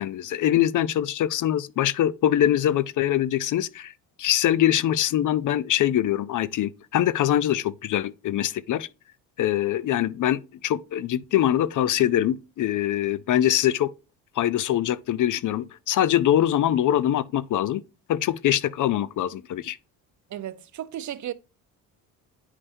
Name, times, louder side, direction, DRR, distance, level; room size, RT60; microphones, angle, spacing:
voice 1, 0.0-3.9 4.2-8.9 9.4-13.9 14.4-17.8 18.1-19.8, left 11 dB, 50° left, 0.6 m, -23 dB
voice 2, 20.3-21.3, right 11 dB, 50° right, 0.7 m, -34 dB
9.9 x 5.4 x 2.7 m
supercardioid pair, 70°, 39 cm